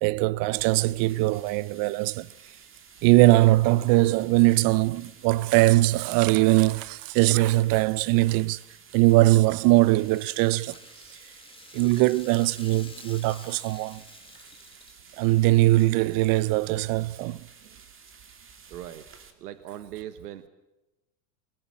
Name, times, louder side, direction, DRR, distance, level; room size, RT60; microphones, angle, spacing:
voice 1, 0.0-2.3 3.0-8.6 8.9-10.8 11.7-14.0 15.2-17.4, right 18 dB, 50° right, 0.7 m, -21 dB
sound 1, 0.6-19.3, right 6 dB, 25° right, 2.8 m, -52 dB
Rattle (instrument), 9.0-15.2, left 4 dB, 10° left, 2.1 m, -50 dB
voice 2, 18.7-19.1 19.4-20.5, right 12 dB, 80° right, 1.4 m, -40 dB
19.5 x 19.5 x 8.6 m
hypercardioid pair, 100°, 45 cm